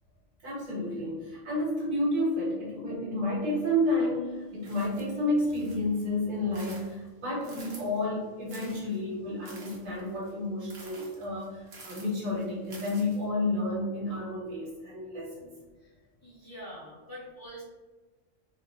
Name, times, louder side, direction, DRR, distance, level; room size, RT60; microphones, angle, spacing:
voice 1, 0.4-15.5, left 1 dB, 80° right, -4 dB, 1.4 m, -30 dB
sound 1, 4.6-6.0 6.4-8.0 8.5-13.3, right 3 dB, 60° right, 0.9 m, -50 dB
voice 2, 16.2-17.6, equal, 20° left, -8 dB, 0.8 m, -44 dB
2.7 x 2.1 x 3.7 m, 1.3 s
omnidirectional pair, 1.4 m